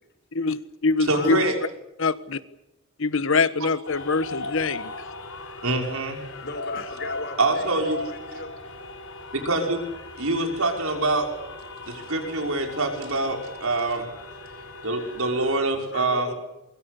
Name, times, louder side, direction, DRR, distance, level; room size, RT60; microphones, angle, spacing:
voice 1, 0.3-1.5 2.0-2.4 3.0-4.9, left 4 dB, 65° left, 1.3 m, -24 dB
voice 2, 1.1-1.6 5.6-6.2 7.4-8.0 9.3-9.8 10.2-11.3 11.9-14.1 14.8-16.3, right 2 dB, 75° right, 5.9 m, -25 dB
sound 1, 3.8-15.5, left 3 dB, 80° left, 5.4 m, -38 dB
voice 3, 6.4-8.5 15.9-16.3, left 2 dB, 45° left, 4.8 m, -36 dB
24.5 x 23.0 x 8.3 m
head